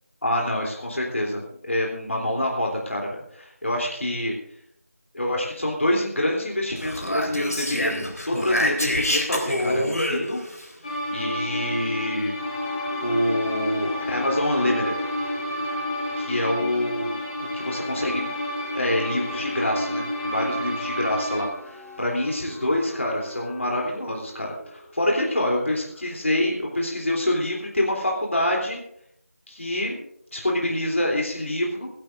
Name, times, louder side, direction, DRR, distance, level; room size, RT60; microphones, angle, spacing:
voice 1, 0.2-4.3 5.1-8.0 8.3-10.4 11.1-12.3 13.0-15.0 16.2-18.3 18.7-28.8 29.5-30.0 30.3-31.9, left 1 dB, 55° left, -2 dB, 3.3 m, -26 dB
Speech, 6.8-10.7, left 1 dB, 85° left, 3.8 m, -26 dB
sound 1, 10.8-21.5, left 1 dB, 25° left, 4.3 m, -30 dB
sound 2, 12.3-26.6, left 2 dB, 5° right, 4.0 m, -40 dB
28.0 x 11.5 x 2.6 m, 0.72 s
figure-of-eight pair, 170°, 8 cm